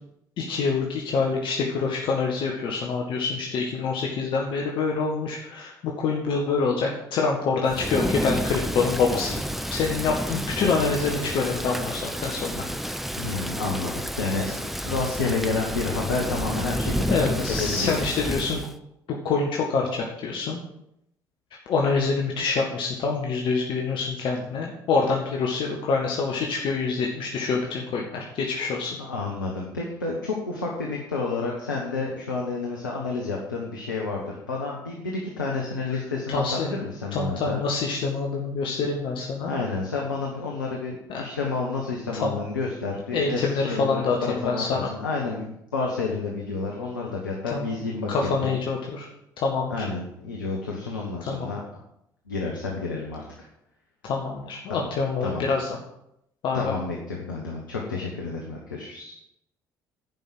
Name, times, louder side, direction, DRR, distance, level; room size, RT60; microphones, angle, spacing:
voice 1, 0.4-9.4 9.7-12.6 17.1-18.6 19.1-20.6 21.6-29.0 36.3-36.8 37.1-39.5 41.1-41.2 42.1-42.4 43.1-44.9 47.5-47.7 48.1-49.1 49.4-49.9 51.2-51.5 54.0-55.7 56.4-56.7, left 4 dB, 55° left, -1 dB, 1.6 m, -26 dB
Thunder / Rain, 7.7-18.7, equal, ahead, 0.7 m, -30 dB
voice 2, 13.2-16.9 17.6-18.0 29.0-37.6 39.4-48.5 49.7-51.6 52.3-53.5 54.7-54.9 55.2-55.4 56.5-59.1, left 3 dB, 85° left, -2 dB, 1.4 m, -30 dB
11.0 x 5.5 x 7.7 m, 0.80 s
figure-of-eight pair, 55°, 10 cm